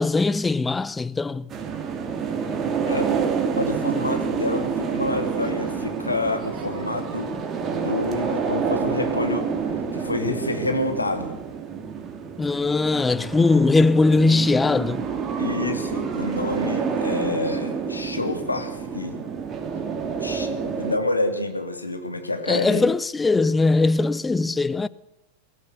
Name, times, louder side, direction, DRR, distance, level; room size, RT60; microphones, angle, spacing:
voice 1, 0.0-1.5 12.4-15.0 22.5-24.9, left 3 dB, 10° left, 0.7 m, -20 dB
sound 1, 1.5-21.0, right 6 dB, 25° right, 3.0 m, -28 dB
voice 2, 3.5-7.3 7.6-9.5 9.9-11.4 15.4-19.2 20.2-22.9, left 2 dB, 80° left, 2.8 m, -28 dB
22.0 x 16.5 x 8.1 m
figure-of-eight pair, 90°, 0 cm